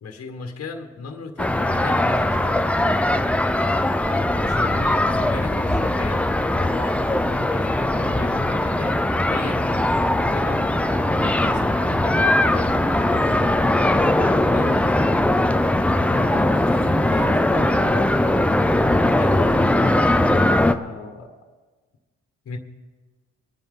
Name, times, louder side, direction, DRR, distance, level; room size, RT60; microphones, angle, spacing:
voice 1, 0.0-2.6 4.4-12.9 13.2-15.2 16.1-18.1 19.0-21.4 22.5-22.6, left 4 dB, 50° left, 4 dB, 1.7 m, -36 dB
sound 1, 1.4-20.7, left 1 dB, 5° left, 0.6 m, -20 dB
23.5 x 9.2 x 3.9 m, 1.4 s
cardioid pair, 90°, 30 cm